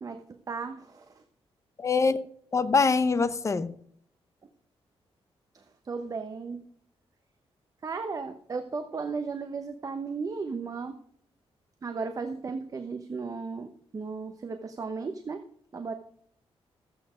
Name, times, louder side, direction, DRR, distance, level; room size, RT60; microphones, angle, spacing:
voice 1, 0.0-1.2 5.8-6.6 7.8-11.0 11.8-15.4 15.7-15.9, right 4 dB, 35° right, 6 dB, 0.9 m, -35 dB
voice 2, 1.8-2.2 2.5-3.7, left 4 dB, 30° left, 13 dB, 0.7 m, -24 dB
14.0 x 8.5 x 5.0 m, 0.63 s
wide cardioid pair, 150°, 10 cm